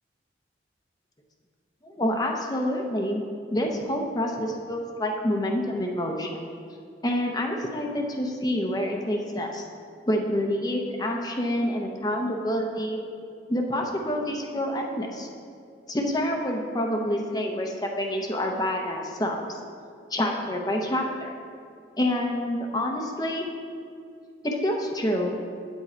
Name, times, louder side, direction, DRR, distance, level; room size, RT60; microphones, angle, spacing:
voice 1, 1.8-3.2 3.5-6.4 7.0-9.6 10.1-13.0 13.5-15.3 15.9-19.5 20.1-21.3 22.0-23.5 24.4-25.4, left 1 dB, 20° left, 1 dB, 0.7 m, -27 dB
9.1 x 7.3 x 4.3 m, 2.3 s
head